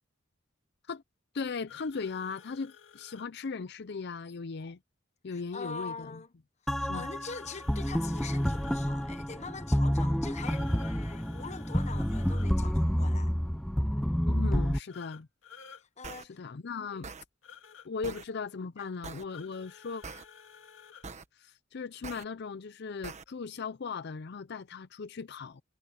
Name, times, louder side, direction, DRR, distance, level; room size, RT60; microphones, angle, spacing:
voice 1, 1.3-4.8 5.2-6.2 6.9-7.1 14.3-15.3 16.3-17.1 17.8-20.0 21.3-25.6, left 4 dB, 55° left, 0.5 m, -38 dB
sound 1, 1.7-3.3 7.3-8.8 10.3-12.5 14.9-15.8 17.4-17.9 19.3-21.1, left 7 dB, 75° left, 2.1 m, -52 dB
voice 2, 5.3-6.3 6.7-13.3 16.0-16.4 18.8-18.9, left 4 dB, 35° left, 1.0 m, -43 dB
sound 2, 6.7-14.8, equal, ahead, 0.3 m, -29 dB
sound 3, 16.0-16.2 17.0-17.2 18.0-18.2 19.0-19.2 20.0-20.2 21.0-21.2 22.0-22.2 23.0-23.2, right 4 dB, 35° right, 1.2 m, -42 dB
head